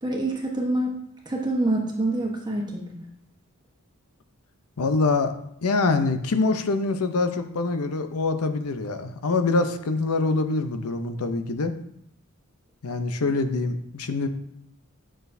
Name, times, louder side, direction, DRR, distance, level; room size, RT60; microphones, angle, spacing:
voice 1, 0.0-0.9 1.2-3.0, right 1 dB, 20° right, -1 dB, 1.1 m, -26 dB
voice 2, 4.8-5.3 5.6-11.7 12.8-14.3, left 3 dB, 85° left, 8 dB, 0.7 m, -24 dB
9.1 x 6.2 x 2.7 m, 0.71 s
head